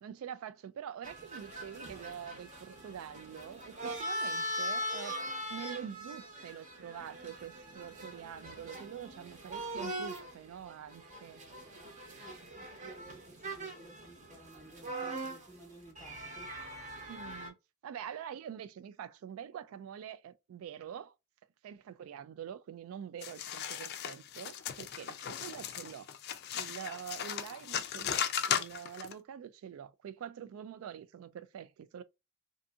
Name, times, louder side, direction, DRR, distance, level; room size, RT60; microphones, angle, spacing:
voice 1, 0.0-11.4 17.1-17.6 17.8-21.2 21.6-26.1 26.5-32.0, right 8 dB, 85° right, 0.3 m, -45 dB
sound 1, 1.0-17.5, equal, 35° right, 0.8 m, -41 dB
voice 2, 12.2-16.5, right 1 dB, 10° left, 0.8 m, -55 dB
sound 2, 23.2-29.1, left 9 dB, 50° left, 0.3 m, -36 dB
2.6 x 2.6 x 2.3 m
head